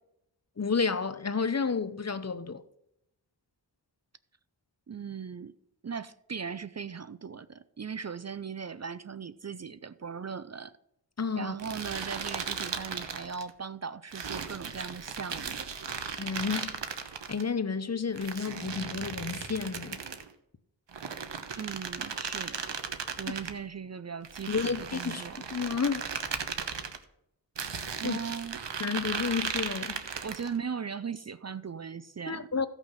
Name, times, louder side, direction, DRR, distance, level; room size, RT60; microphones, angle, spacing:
voice 1, 0.6-2.6 11.2-11.5 16.0-16.8 17.3-20.0 24.5-25.2 25.5-26.1 28.0-28.2 28.8-29.9 32.3-32.7, left 5 dB, 40° left, 0.8 m, -31 dB
voice 2, 4.9-5.5 5.8-10.7 11.4-15.7 21.5-22.8 23.2-25.4 28.0-28.6 30.2-32.5, right 6 dB, 40° right, 0.5 m, -38 dB
sound 1, 11.6-13.5 14.1-17.4 18.2-20.3 20.9-23.6 24.2-27.0 27.6-30.5, right 6 dB, 85° right, 1.2 m, -36 dB
15.5 x 6.1 x 5.7 m
wide cardioid pair, 70°, 42 cm